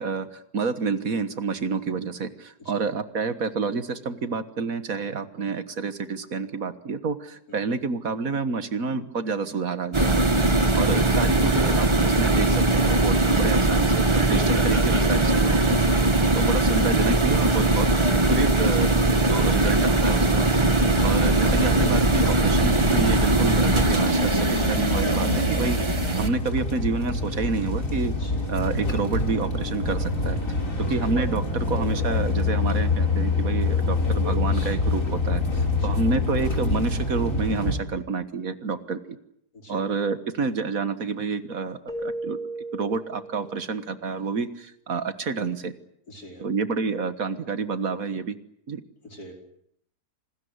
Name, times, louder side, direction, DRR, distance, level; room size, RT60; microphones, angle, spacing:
voice 1, 0.0-10.2 10.7-15.8 16.3-20.5 21.0-28.1 28.5-30.4 30.9-39.2 39.7-42.4 42.7-45.7 46.4-48.3 48.7-48.8, right 4 dB, 60° right, 11 dB, 1.8 m, -29 dB
sound 1, 9.9-26.3, right 2 dB, 20° right, 1.6 m, -21 dB
sound 2, 21.0-37.8, left 2 dB, 55° left, 4.5 m, -26 dB
voice 2, 39.5-39.8 46.1-46.5 49.0-49.3, equal, 70° left, 3 dB, 5.2 m, -44 dB
Keyboard (musical), 41.9-43.9, right 2 dB, ahead, 2.8 m, -35 dB
27.0 x 20.0 x 9.6 m, 0.73 s
omnidirectional pair, 1.7 m